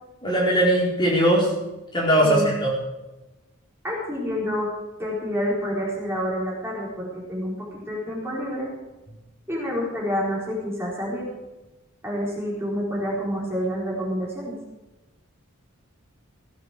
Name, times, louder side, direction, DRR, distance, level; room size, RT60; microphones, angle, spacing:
voice 1, 0.2-1.5 1.9-2.7, right 1 dB, 20° left, -5 dB, 4.2 m, -20 dB
voice 2, 3.8-4.7 5.0-8.7 9.5-11.3 12.0-14.5, equal, 10° right, -4 dB, 4.3 m, -28 dB
17.5 x 9.2 x 6.3 m, 1.1 s
head